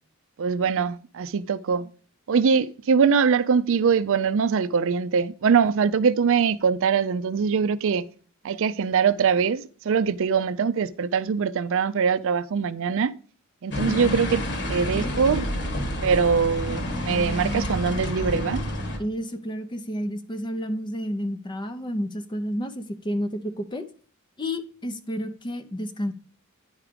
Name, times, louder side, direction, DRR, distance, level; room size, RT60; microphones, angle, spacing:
voice 1, 0.4-1.9 2.3-8.1 8.4-13.2 13.6-14.4 14.7-15.4 16.0-18.6, right 6 dB, 65° right, 0.4 m, -22 dB
sound 1, 13.7-19.0, equal, 50° left, 1.5 m, -29 dB
voice 2, 19.0-23.8 24.4-26.1, equal, 20° left, 0.5 m, -30 dB
9.6 x 4.8 x 5.0 m
head